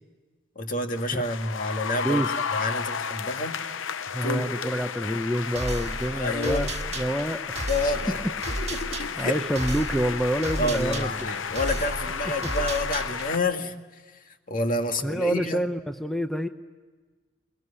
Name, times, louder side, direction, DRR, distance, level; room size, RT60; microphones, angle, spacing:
voice 1, 0.6-2.2 2.5-3.6 4.2-4.7 6.1-6.7 7.7-9.4 10.6-13.7 14.5-15.6, left 2 dB, 45° left, 5 dB, 2.0 m, -29 dB
sound 1, 0.9-13.4, left 7 dB, 75° left, 0.8 m, -33 dB
voice 2, 4.1-7.7 8.1-8.2 8.5-8.7 9.2-11.1 12.4-12.5 15.0-16.5, right 1 dB, ahead, 7 dB, 0.7 m, -27 dB
sound 2, 5.6-13.4, right 2 dB, 35° right, 1.8 m, -34 dB
23.0 x 22.5 x 9.8 m, 1.4 s
head